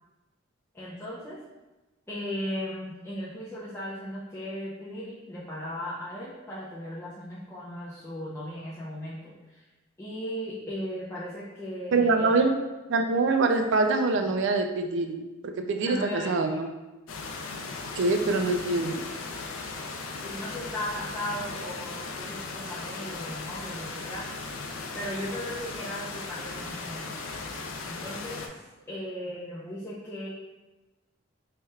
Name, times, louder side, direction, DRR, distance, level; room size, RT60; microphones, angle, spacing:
voice 1, 0.7-1.4 2.1-9.6 10.0-12.4 15.8-16.6 20.2-24.3 24.9-27.4 27.8-30.3, equal, 10° left, -8 dB, 0.5 m, -37 dB
voice 2, 11.9-12.6 12.9-15.2 15.6-16.7 18.0-19.0, right 3 dB, 60° right, 5 dB, 0.4 m, -24 dB
sound 1, 17.1-28.5, left 3 dB, 85° left, 0.5 m, -37 dB
3.3 x 2.3 x 4.2 m, 1.1 s
head